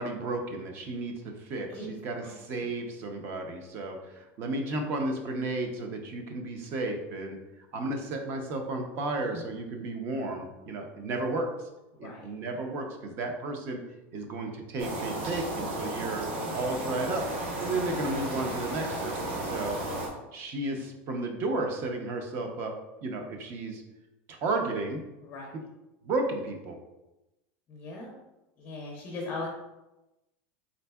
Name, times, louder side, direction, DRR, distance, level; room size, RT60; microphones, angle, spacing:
voice 1, 0.0-7.4 7.7-11.5 12.0-13.8 14.1-16.3 16.5-17.2 17.6-19.8 20.3-22.7 23.0-23.8 24.3-25.0 25.5-25.6 26.0-26.8, right 2 dB, 35° right, 4 dB, 0.5 m, -33 dB
sound 1, 14.8-20.1, right 1 dB, 65° right, 1.0 m, -34 dB
voice 2, 27.7-28.1 28.6-29.5, left 2 dB, 25° left, -2 dB, 0.5 m, -39 dB
3.9 x 3.4 x 2.2 m, 0.98 s
supercardioid pair, 170°, 7 cm